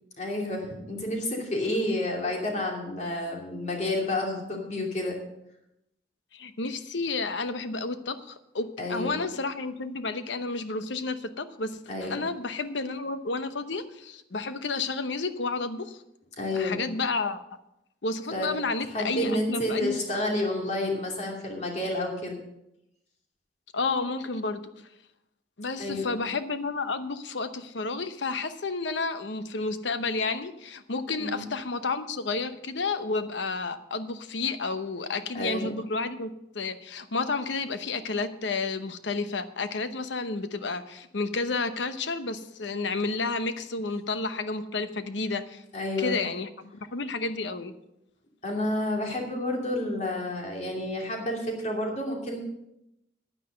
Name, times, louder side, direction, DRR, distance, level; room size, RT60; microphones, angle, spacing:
voice 1, 0.2-5.2 8.8-9.1 11.9-12.2 16.4-16.8 18.3-18.5 18.9-22.4 25.8-26.2 31.2-31.5 35.3-35.7 45.7-46.2 48.4-52.4, left 1 dB, 40° left, 0 dB, 2.7 m, -30 dB
voice 2, 6.3-16.0 16.5-17.4 18.0-19.9 23.7-24.6 25.6-45.6 46.0-47.7, left 3 dB, 75° left, 11 dB, 0.9 m, -31 dB
10.0 x 9.7 x 6.5 m, 0.84 s
head